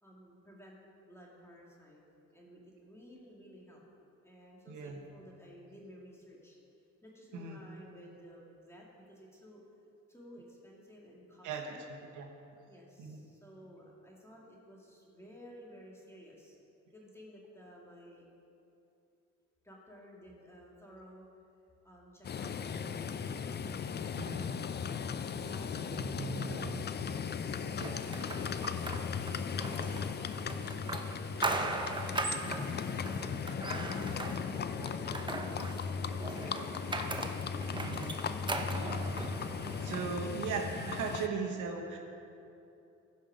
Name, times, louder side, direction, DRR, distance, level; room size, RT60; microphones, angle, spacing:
voice 1, 0.0-3.8 4.2-6.6 7.0-9.6 10.1-11.9 12.7-16.6 16.9-18.3 19.6-21.3 21.8-22.6 22.9-23.7 25.3-27.1 31.3-32.9 33.7-35.3, equal, 10° left, -3 dB, 2.4 m, -55 dB
voice 2, 4.7-5.0 7.3-7.6 11.4-12.3 13.0-13.2 24.1-24.5 25.7-26.8 27.8-28.0 32.4-32.6 37.7-38.1 39.8-42.0, right 5 dB, 80° right, 2 dB, 1.2 m, -38 dB
Livestock farm animals working animals, 22.2-41.3, left 6 dB, 35° left, 0.5 m, -37 dB
sound 1, 27.8-40.1, right 2 dB, 15° right, 0.8 m, -39 dB
15.5 x 5.5 x 5.1 m, 2.7 s
cardioid pair, 90°, 30 cm